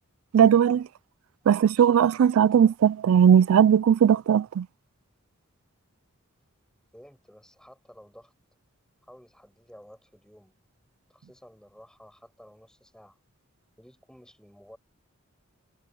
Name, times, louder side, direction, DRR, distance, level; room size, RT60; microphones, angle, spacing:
voice 1, 0.3-0.9 1.5-4.7, right 8 dB, 90° right, 0.3 m, -18 dB
voice 2, 6.9-8.3 9.0-10.6 11.1-13.2 13.8-14.8, equal, 5° left, 5.8 m, -52 dB
head